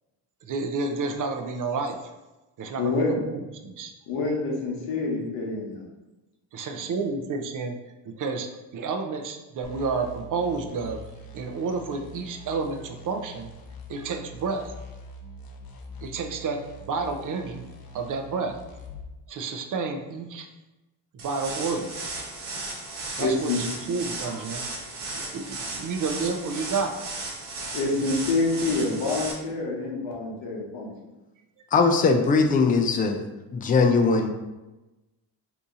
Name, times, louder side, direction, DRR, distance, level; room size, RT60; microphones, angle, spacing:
voice 1, 0.5-2.0 2.6-3.9 6.5-7.8 8.1-8.5 8.7-13.5 13.9-14.8 16.0-17.7 17.9-18.6 19.3-20.5 21.2-22.0 23.0-24.6 25.1-27.0, right 4 dB, 45° right, 5 dB, 0.5 m, -30 dB
voice 2, 2.8-3.1 4.1-5.8 23.2-23.6 27.7-30.9, left 3 dB, 90° left, -1 dB, 0.9 m, -27 dB
sound 1, 9.6-19.1, left 1 dB, 55° left, 0.6 m, -44 dB
sound 2, 21.2-29.3, right 3 dB, 65° right, 1.0 m, -35 dB
voice 3, 31.7-33.2 33.5-34.3, left 4 dB, 20° left, 4 dB, 0.3 m, -20 dB
2.8 x 2.6 x 3.6 m, 1.1 s
cardioid pair, 75°, 44 cm